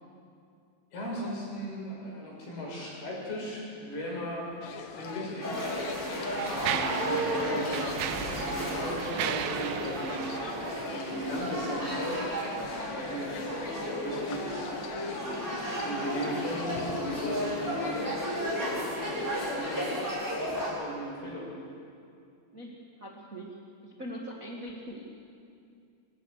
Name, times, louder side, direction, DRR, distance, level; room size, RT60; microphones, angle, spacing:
voice 1, 0.9-4.5 4.8-5.7 6.5-10.3 10.8-12.3 12.8-13.5 13.9-14.5 15.5-18.2 18.5-19.9 20.6-21.5, equal, 65° left, -4 dB, 8.9 m, -37 dB
sound 1, 4.6-19.4, left 6 dB, 90° left, 3.7 m, -44 dB
Mechanisms, 5.0-5.1 5.9-11.6, right 9 dB, 75° right, 2.8 m, -36 dB
sound 2, 5.4-20.7, equal, 5° right, 5.5 m, -33 dB
voice 2, 22.5-23.5 23.8-25.0, equal, 30° right, -2 dB, 1.5 m, -41 dB
25.5 x 24.0 x 6.7 m, 2.4 s
omnidirectional pair, 4.9 m